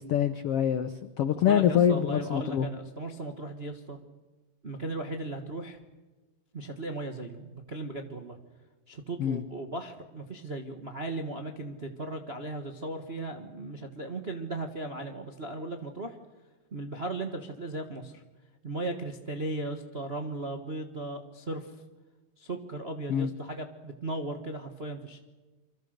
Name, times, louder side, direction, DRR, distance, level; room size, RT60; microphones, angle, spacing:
voice 1, 0.0-2.7 9.2-9.4 23.1-23.3, left 9 dB, 80° left, 11 dB, 1.3 m, -25 dB
voice 2, 1.5-4.0 4.6-5.8 6.5-8.4 8.9-16.2 16.7-18.2 18.6-21.7 22.4-25.2, right 2 dB, 45° right, 4 dB, 0.8 m, -37 dB
27.0 x 25.0 x 6.6 m, 1.2 s
omnidirectional pair, 3.9 m